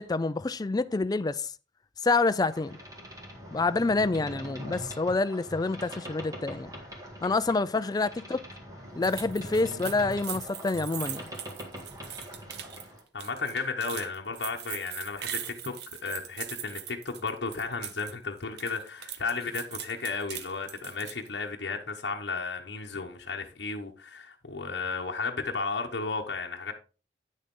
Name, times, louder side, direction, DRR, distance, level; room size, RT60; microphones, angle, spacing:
voice 1, 0.0-1.5 2.0-2.8 3.5-6.7 7.2-8.5 9.0-11.2, left 3 dB, 20° left, 0.4 m, -27 dB
Boat Water vehicle, 2.5-13.0, equal, 20° right, 1.9 m, -43 dB
sound 1, 9.0-18.1 18.4-21.3, right 10 dB, 65° right, 0.8 m, -40 dB
voice 2, 13.1-26.7, left 4 dB, 65° left, 1.0 m, -34 dB
9.2 x 6.5 x 3.7 m
head